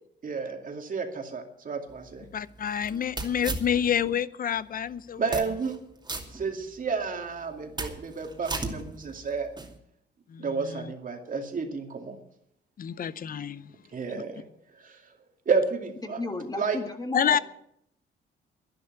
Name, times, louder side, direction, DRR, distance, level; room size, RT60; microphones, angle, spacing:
voice 1, 0.2-2.3 5.2-5.8 6.3-9.5 10.4-12.2 13.9-14.5 14.7-15.1 15.5-16.2 16.6-16.8, right 5 dB, 45° right, 2.4 m, -31 dB
sound 1, 1.9-4.2 4.6-4.7 5.2-5.8 6.1-7.0 7.4-9.8, right 2 dB, 20° right, 2.6 m, -37 dB
voice 2, 2.3-5.4 10.3-10.9 12.8-13.7 14.1-14.2 17.1-17.4, left 8 dB, 45° left, 0.7 m, -28 dB
voice 3, 16.0-17.4, left 2 dB, 20° left, 1.9 m, -33 dB
11.0 x 11.0 x 8.0 m
cardioid pair, 90°, 20 cm